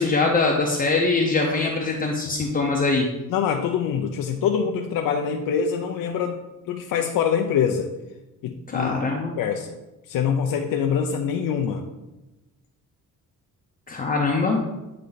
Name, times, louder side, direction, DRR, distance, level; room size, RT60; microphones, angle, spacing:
voice 1, 0.0-3.1 8.7-9.3 13.9-14.6, left 3 dB, 25° left, -1 dB, 0.6 m, -22 dB
voice 2, 3.3-6.4 6.7-7.9 8.4-9.0 9.4-9.7 10.1-11.8, left 7 dB, 85° left, 3 dB, 0.6 m, -24 dB
8.6 x 3.2 x 3.9 m, 1.0 s
cardioid pair, 160°, 33 cm